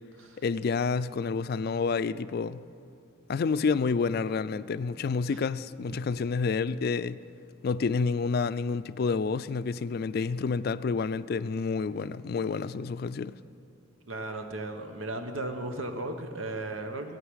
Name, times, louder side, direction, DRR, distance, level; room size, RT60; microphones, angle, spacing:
voice 1, 0.4-2.6 3.3-7.2 7.6-13.4, left 4 dB, 50° left, 0.3 m, -29 dB
voice 2, 14.1-17.2, right 2 dB, 85° right, 1.1 m, -36 dB
16.5 x 8.9 x 6.3 m
head